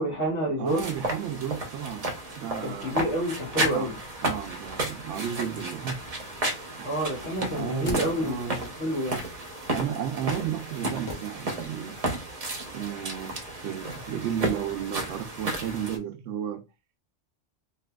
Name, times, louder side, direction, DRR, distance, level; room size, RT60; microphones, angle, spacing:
voice 1, 0.0-0.8 2.6-3.9 6.8-9.2, equal, 70° left, 1.5 m, -29 dB
voice 2, 0.6-2.1 2.3-3.0 3.6-6.0 6.8-6.9 7.5-8.6 9.7-12.0 12.7-16.6, right 9 dB, 80° right, 0.9 m, -33 dB
sound 1, 0.7-16.0, right 1 dB, 35° right, 0.7 m, -33 dB
sound 2, 7.8-8.7 11.1-12.0 12.2-12.3, left 1 dB, 30° left, 0.6 m, -40 dB
3.2 x 2.9 x 2.2 m
omnidirectional pair, 1.3 m